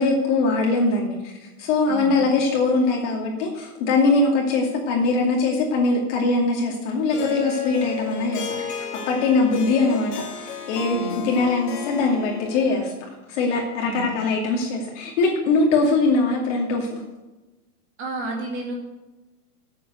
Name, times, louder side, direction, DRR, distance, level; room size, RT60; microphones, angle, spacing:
voice 1, 0.0-1.3 1.6-11.0 11.2-12.9 13.3-17.0, left 3 dB, 50° left, -2 dB, 2.6 m, -22 dB
Harp, 7.1-12.9, left 7 dB, 90° left, 3.3 m, -32 dB
voice 2, 18.0-18.7, right 2 dB, 25° right, 0 dB, 2.3 m, -31 dB
9.9 x 8.6 x 7.9 m, 1.1 s
supercardioid pair, 150°, 46 cm